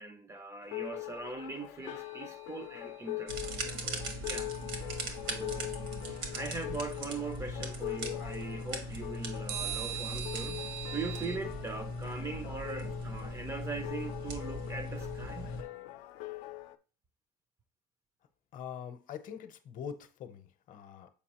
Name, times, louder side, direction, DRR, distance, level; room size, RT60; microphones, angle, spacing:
voice 1, 0.0-4.5 5.3-5.7 6.3-10.6 10.9-15.5, right 3 dB, 15° right, 0.4 m, -41 dB
sound 1, 0.6-16.8, left 18 dB, 85° left, 0.5 m, -43 dB
sound 2, 1.8-3.1 9.5-11.4, right 11 dB, 70° right, 0.5 m, -41 dB
sound 3, 3.3-15.6, equal, 85° right, 1.5 m, -39 dB
voice 2, 18.5-21.1, left 8 dB, 45° left, 0.7 m, -44 dB
7.1 x 4.8 x 2.9 m
cardioid pair, 160°, 19 cm